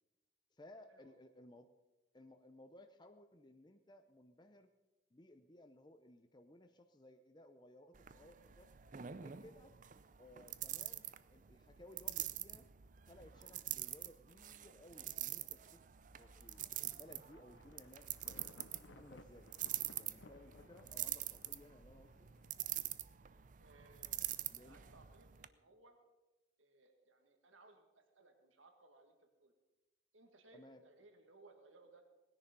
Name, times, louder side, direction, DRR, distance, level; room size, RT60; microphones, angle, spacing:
voice 1, 0.5-1.7 2.1-4.7 5.1-8.7 9.1-9.7 10.2-12.7 13.0-15.8 16.2-18.5 18.9-19.5 19.9-22.3 24.5-24.8 30.5-30.8, left 1 dB, 20° left, 7 dB, 0.6 m, -60 dB
sound 1, 7.9-25.5, right 13 dB, 40° right, 0.5 m, -45 dB
Thunder, 16.2-22.6, left 3 dB, 70° left, 0.8 m, -62 dB
voice 2, 23.6-24.2 24.6-26.0 26.6-29.5 30.1-32.0, right 2 dB, 90° right, 4 dB, 2.1 m, -64 dB
19.0 x 10.0 x 5.3 m, 1.1 s
head